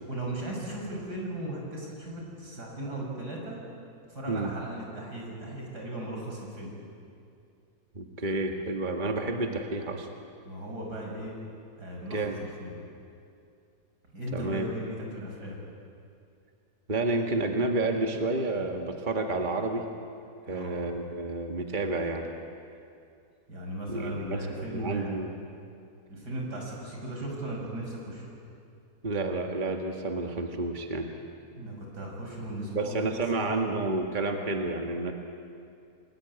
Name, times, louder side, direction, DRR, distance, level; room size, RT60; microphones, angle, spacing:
voice 1, 0.1-3.6 4.1-6.7 10.4-11.4 11.8-12.2 12.6-12.7 14.1-15.6 20.5-20.7 23.5-25.2 26.1-28.3 31.6-33.1 33.4-33.5 35.1-35.2, right 1 dB, 85° right, -1 dB, 6.8 m, -37 dB
voice 2, 7.9-10.1 12.1-12.4 14.3-14.7 16.9-19.9 20.5-22.3 23.9-25.3 29.0-31.1 32.7-35.1, right 2 dB, 30° right, 3 dB, 1.9 m, -30 dB
29.0 x 21.0 x 9.7 m, 2.5 s
omnidirectional pair, 1.7 m